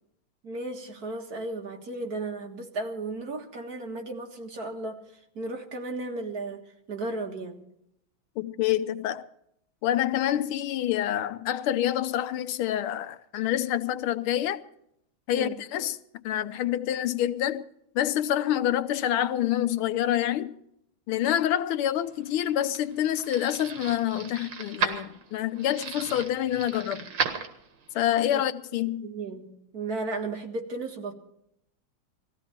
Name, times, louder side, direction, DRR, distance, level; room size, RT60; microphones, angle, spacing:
voice 1, 0.4-5.0 5.4-6.6 6.9-7.6 15.3-15.5 28.3-28.4 29.0-31.1, right 2 dB, 45° right, 2.1 m, -34 dB
voice 2, 8.4-9.3 9.8-14.6 15.3-16.0 16.2-17.7 17.9-20.5 21.1-27.1 27.9-29.1, left 11 dB, 85° left, 1.6 m, -27 dB
sound 1, 22.0-28.0, right 6 dB, 75° right, 2.5 m, -35 dB
19.0 x 15.0 x 4.3 m
omnidirectional pair, 2.3 m